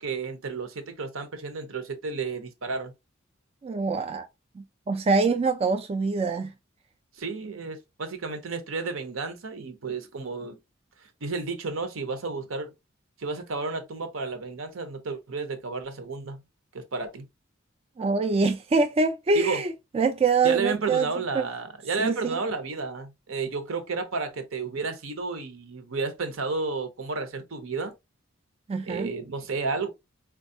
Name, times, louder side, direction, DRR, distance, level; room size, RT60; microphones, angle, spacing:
voice 1, 0.0-2.9 7.1-10.6 11.2-12.7 13.2-16.4 16.7-17.3 19.3-19.6 20.4-27.9 28.9-29.9, right 4 dB, 75° right, 0.8 m, -32 dB
voice 2, 3.6-4.3 4.6-6.5 18.0-21.1 21.3-21.5 22.0-22.4 28.7-29.1, right 4 dB, 30° right, 0.3 m, -25 dB
4.3 x 2.3 x 2.6 m
head